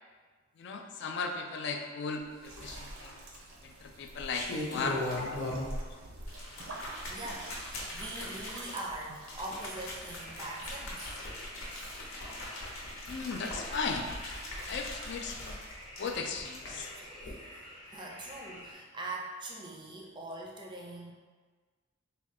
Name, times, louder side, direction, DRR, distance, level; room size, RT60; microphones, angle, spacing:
voice 1, 0.6-3.2 3.6-5.1 5.4-5.8 13.0-14.2 14.7-15.6 16.0-16.9, left 4 dB, 55° left, 4 dB, 0.3 m, -37 dB
sound 1, 2.4-10.7, right 2 dB, 80° right, 0.6 m, -49 dB
sound 2, 2.6-3.2 4.0-5.9 6.2-16.8 17.2-17.3, left 1 dB, 85° left, 0.8 m, -40 dB
voice 2, 7.1-11.2 11.7-12.1 16.6-21.1, right 2 dB, 20° right, -1 dB, 0.4 m, -43 dB
sound 3, 10.1-18.7, left 1 dB, 25° left, 0.8 m, -50 dB
3.5 x 2.2 x 4.1 m, 1.4 s
head